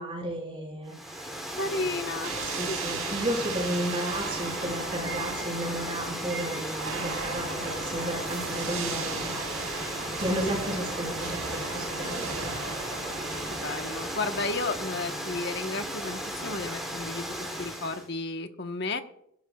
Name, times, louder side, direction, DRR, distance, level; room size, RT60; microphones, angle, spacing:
voice 1, 0.0-1.6 2.4-12.5, right 1 dB, 25° right, 0 dB, 5.5 m, -34 dB
Water, 0.9-18.1, equal, ahead, 2.9 m, -36 dB
voice 2, 1.6-2.3 13.5-17.3 17.6-19.0, left 3 dB, 50° left, 6 dB, 1.2 m, -32 dB
sound 1, 2.2-14.9, right 4 dB, 85° right, 3.9 m, -37 dB
24.0 x 12.0 x 2.4 m, 0.74 s
head